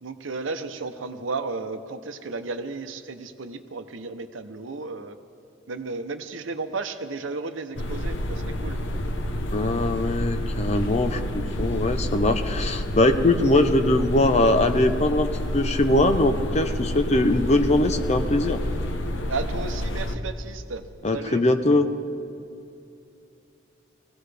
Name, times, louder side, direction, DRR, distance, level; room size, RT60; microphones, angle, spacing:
voice 1, 0.0-5.2 5.7-8.8 19.3-20.8 21.1-21.4, right 3 dB, 85° right, 8 dB, 0.8 m, -33 dB
sound 1, 7.8-20.2, left 1 dB, 75° left, 0.9 m, -29 dB
voice 2, 9.5-15.3 15.5-18.6 21.0-21.9, left 2 dB, 35° left, 7 dB, 0.7 m, -21 dB
20.5 x 16.0 x 3.4 m, 2.6 s
head